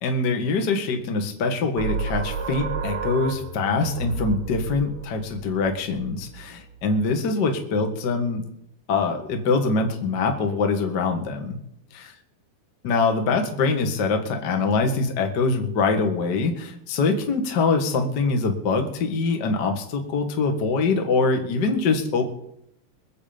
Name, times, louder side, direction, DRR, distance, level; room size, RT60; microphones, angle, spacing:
voice 1, 0.0-8.4 8.9-11.6 11.9-12.1 12.8-22.3, left 4 dB, 40° left, 4 dB, 1.5 m, -24 dB
sound 1, 1.8-7.0, right 5 dB, 60° right, 1.6 m, -32 dB
23.0 x 8.2 x 5.2 m, 0.75 s
omnidirectional pair, 4.5 m